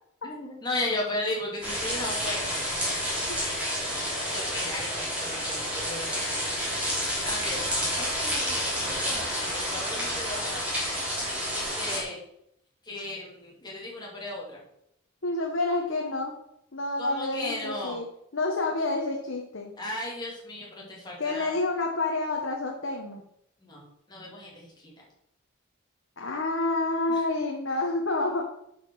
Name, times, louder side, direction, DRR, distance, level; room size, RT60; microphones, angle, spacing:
voice 1, 0.2-2.6 4.3-6.4 6.7-7.6 8.0-10.9 11.5-12.2 12.8-14.6 17.0-18.0 19.8-21.5 23.6-24.9 27.1-27.2, left 1 dB, 20° left, -3 dB, 2.5 m, -36 dB
sound 1, 1.6-12.0, equal, 5° right, 3.0 m, -30 dB
voice 2, 15.2-16.3 16.7-18.1 18.3-19.7 21.2-23.2 26.2-28.4, left 2 dB, 60° left, 1 dB, 1.1 m, -28 dB
7.8 x 5.2 x 6.2 m, 0.76 s
head